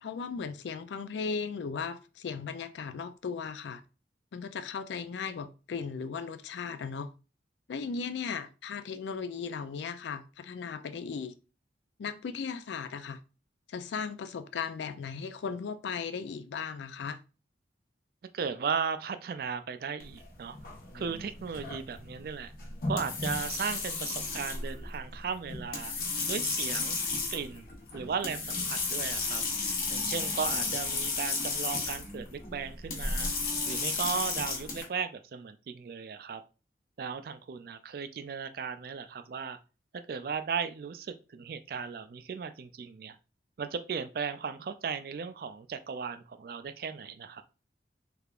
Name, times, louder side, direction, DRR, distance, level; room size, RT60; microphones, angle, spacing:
voice 1, 0.0-3.8 4.3-7.1 7.7-11.4 12.0-13.2 13.7-17.2, left 5 dB, 75° left, 0.4 m, -37 dB
voice 2, 18.3-20.6 20.9-22.5 22.9-25.9 26.3-27.0 27.3-27.7 27.9-29.4 29.9-33.3 33.7-36.4 37.0-39.6 39.9-43.2 43.6-47.4, right 6 dB, 55° right, 0.3 m, -36 dB
sound 1, 20.0-34.8, left 3 dB, 50° left, 0.9 m, -34 dB
3.4 x 3.3 x 2.4 m
head